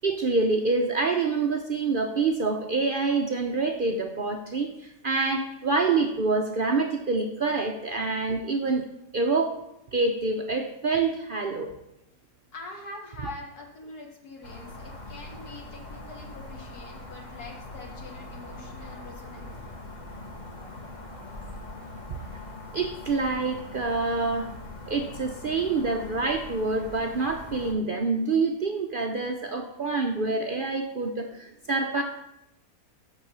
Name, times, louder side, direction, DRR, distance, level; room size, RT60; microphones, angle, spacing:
voice 1, 0.0-8.8 9.1-9.6 9.9-11.7 13.2-13.3 20.6-20.7 22.7-24.5 24.9-32.0, right 3 dB, 70° right, 4 dB, 0.5 m, -26 dB
voice 2, 12.5-19.7, left 2 dB, 70° left, 0 dB, 1.7 m, -44 dB
sound 1, 14.4-27.7, left 2 dB, 30° left, 1.2 m, -42 dB
6.9 x 6.1 x 6.7 m, 0.85 s
omnidirectional pair, 1.7 m